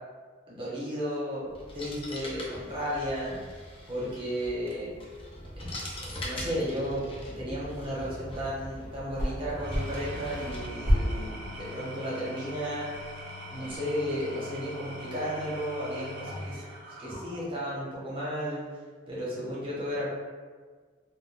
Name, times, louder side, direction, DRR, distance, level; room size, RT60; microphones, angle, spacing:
voice 1, 0.5-3.4 3.9-4.9 5.7-12.9 13.2-16.6 17.0-18.6 19.1-20.1, equal, 30° right, -7 dB, 0.8 m, -34 dB
sound 1, 1.5-10.7, left 1 dB, 30° left, 0.4 m, -41 dB
sound 2, 9.1-13.8, equal, 65° left, 1.1 m, -33 dB
Engine / Tools, 9.4-17.7, left 1 dB, 60° right, 0.4 m, -42 dB
2.3 x 2.2 x 3.4 m, 1.5 s
head